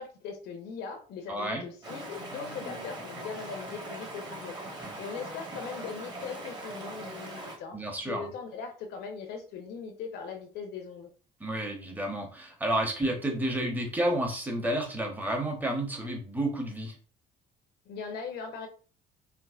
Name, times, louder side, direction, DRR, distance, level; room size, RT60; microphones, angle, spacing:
voice 1, 0.0-7.8 8.0-11.1 17.9-18.7, left 6 dB, 75° left, 5 dB, 0.8 m, -40 dB
voice 2, 1.3-1.6 7.7-8.3 11.4-16.9, right 1 dB, 10° right, 2 dB, 0.9 m, -30 dB
Stream, 1.8-7.6, right 1 dB, 25° right, 1.2 m, -41 dB
4.5 x 2.1 x 2.4 m, 0.39 s
cardioid pair, 110°, 17 cm